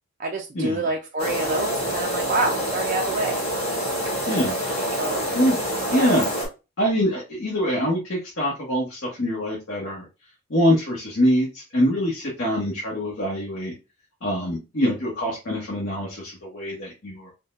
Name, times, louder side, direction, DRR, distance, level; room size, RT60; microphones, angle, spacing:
voice 1, 0.2-3.4 5.0-5.3 5.9-6.2, right 2 dB, 35° right, 1 dB, 0.3 m, -27 dB
sound 1, 1.2-6.5, equal, 25° left, 1.4 m, -26 dB
voice 2, 4.3-4.6 5.3-5.6 5.9-6.3 6.8-10.1 10.5-13.7 14.2-17.3, equal, 55° left, -4 dB, 1.1 m, -24 dB
3.8 x 2.1 x 2.4 m, 0.28 s
head